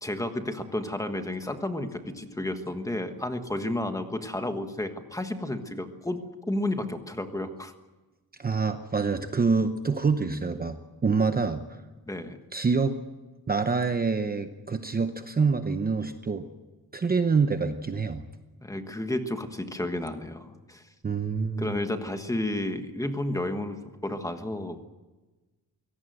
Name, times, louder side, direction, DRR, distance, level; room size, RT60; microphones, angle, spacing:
voice 1, 0.0-6.2 6.5-7.7 12.1-12.4 18.6-20.8 21.6-24.8, left 1 dB, 10° left, 7 dB, 1.4 m, -32 dB
voice 2, 8.4-10.8 11.0-11.6 12.5-13.0 13.5-16.4 16.9-18.2 21.0-21.8, right 4 dB, 25° right, 8 dB, 0.8 m, -26 dB
23.5 x 17.5 x 7.8 m, 1.2 s
wide cardioid pair, 175°, 36 cm